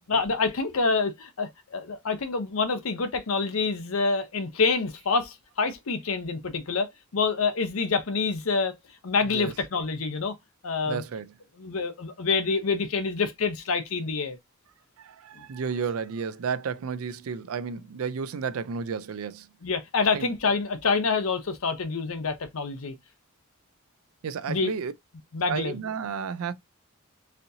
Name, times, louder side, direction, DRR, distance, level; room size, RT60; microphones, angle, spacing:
voice 1, 0.1-8.7 9.0-10.3 10.6-11.0 11.6-14.4 15.3-15.4 19.6-22.9 24.5-24.7 25.3-25.8, left 4 dB, 80° left, 0.7 m, -27 dB
voice 2, 10.9-11.3 15.0-19.5 20.1-20.3 24.2-24.9 25.5-26.5, right 6 dB, 85° right, 0.4 m, -32 dB
4.2 x 2.7 x 2.6 m
head